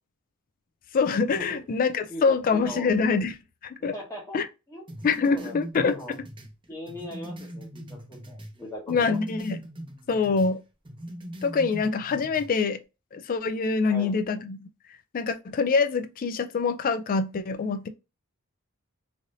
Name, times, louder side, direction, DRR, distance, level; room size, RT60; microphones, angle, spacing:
voice 1, 0.9-3.4 3.6-3.9 4.3-4.5 5.0-6.2 8.9-9.6 10.1-10.6 11.4-12.8 13.1-14.7 15.1-17.9, left 4 dB, 40° left, 0.3 m, -25 dB
voice 2, 3.9-4.4 4.7-4.9 5.3-6.1 6.7-9.2 13.9-14.2, equal, 15° left, 0.9 m, -39 dB
sound 1, 4.9-8.6 8.9-10.5 10.8-12.5, right 1 dB, 20° right, 0.6 m, -40 dB
3.2 x 2.6 x 2.6 m
head